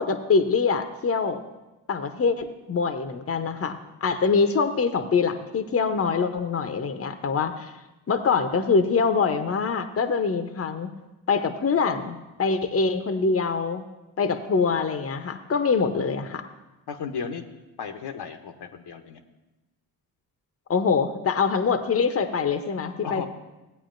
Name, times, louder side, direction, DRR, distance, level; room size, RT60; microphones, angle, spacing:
voice 1, 0.0-1.4 1.9-7.7 8.1-10.9 11.3-13.8 14.2-16.5 20.7-23.3, left 5 dB, 30° left, 9 dB, 0.8 m, -24 dB
voice 2, 16.9-17.4 17.8-19.2 23.0-23.3, left 6 dB, 60° left, 6 dB, 0.9 m, -34 dB
15.5 x 8.5 x 2.6 m, 1.1 s
hypercardioid pair, 45°, 45 cm